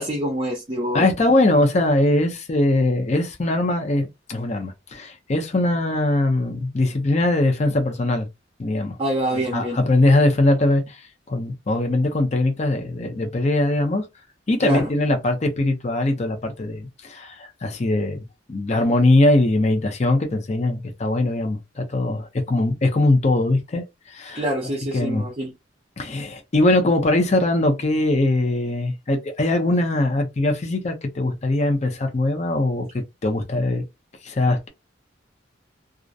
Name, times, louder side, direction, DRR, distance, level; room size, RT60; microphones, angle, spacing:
voice 1, 0.0-1.1 9.0-9.8 14.6-14.9 24.3-25.5, equal, 30° right, 0.5 m, -26 dB
voice 2, 0.9-8.3 8.6-8.9 9.3-11.0 11.3-14.0 14.5-18.2 18.5-24.4 24.9-25.3 26.0-33.8 34.2-34.7, left 2 dB, 35° left, 0.5 m, -21 dB
2.4 x 2.0 x 2.6 m
head